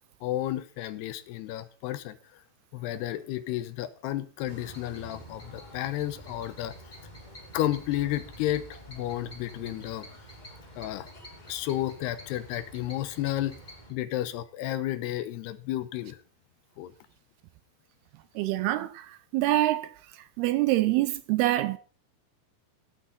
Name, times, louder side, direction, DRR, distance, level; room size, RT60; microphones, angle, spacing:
voice 1, 0.2-2.4 2.7-6.7 7.5-10.1 10.8-11.1 11.5-13.6 13.9-16.2 16.8-16.9, left 14 dB, 80° left, 2.7 m, -32 dB
sound 1, 4.4-13.9, equal, 15° left, 2.0 m, -47 dB
voice 2, 18.4-19.1 19.3-19.9 20.4-21.8, right 16 dB, 80° right, 2.4 m, -25 dB
15.5 x 8.8 x 4.0 m
omnidirectional pair, 5.0 m